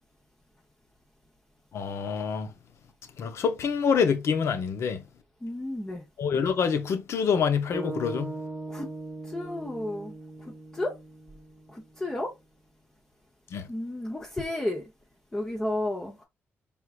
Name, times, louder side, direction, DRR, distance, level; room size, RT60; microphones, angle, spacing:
voice 1, 1.7-2.5 3.2-5.0 6.2-8.3 13.5-13.7, left 6 dB, 65° left, 0.9 m, -26 dB
voice 2, 5.4-6.0 8.7-8.9 9.3-10.1 10.7-10.9 11.7-12.3 13.7-14.8 15.3-16.2, left 1 dB, 15° left, 0.9 m, -32 dB
sound 1, 7.7-12.0, right 2 dB, 10° right, 1.0 m, -39 dB
4.6 x 3.6 x 2.5 m
cardioid pair, 110°, 5 cm